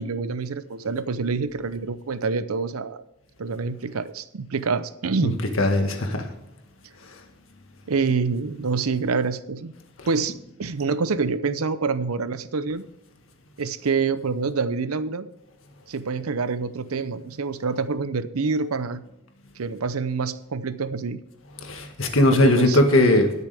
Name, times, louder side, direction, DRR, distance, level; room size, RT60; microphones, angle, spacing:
voice 1, 0.0-3.0 3.4-5.4 7.9-9.7 10.1-12.8 13.6-15.3 15.9-19.0 19.6-21.2 22.3-22.8, right 4 dB, 85° right, 14 dB, 0.7 m, -26 dB
voice 2, 5.6-6.3 21.6-23.3, left 1 dB, 65° left, 4 dB, 1.8 m, -19 dB
20.0 x 6.8 x 3.5 m, 0.94 s
head